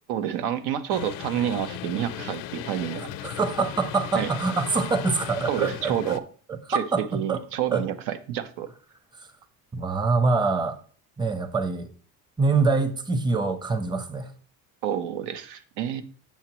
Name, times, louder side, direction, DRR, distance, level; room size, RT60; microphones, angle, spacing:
voice 1, 0.1-3.1 4.1-4.3 5.5-6.2 6.7-6.8 7.1-8.7 14.8-16.0, right 10 dB, 85° right, 0.7 m, -29 dB
sound 1, 0.9-6.2, left 14 dB, 80° left, 0.6 m, -37 dB
voice 2, 3.2-6.2 6.7-7.4 7.7-7.8 9.2-9.3 9.7-10.8 11.2-11.9 12.4-14.3, right 4 dB, 15° right, 0.6 m, -25 dB
7.2 x 6.8 x 3.0 m
cardioid pair, 130°, 33 cm